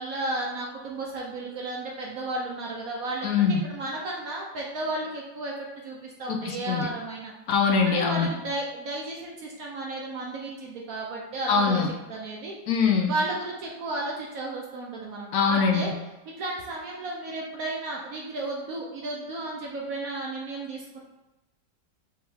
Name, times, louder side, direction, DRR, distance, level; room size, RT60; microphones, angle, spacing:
voice 1, 0.0-7.3 7.8-12.5 13.1-15.9 16.3-21.0, right 2 dB, 60° right, -2 dB, 1.0 m, -33 dB
voice 2, 3.2-3.6 6.3-6.9 7.5-8.3 11.5-11.9 12.7-13.1 15.3-15.9, left 5 dB, 70° left, 3 dB, 0.9 m, -23 dB
5.3 x 2.9 x 3.5 m, 1.0 s
omnidirectional pair, 1.9 m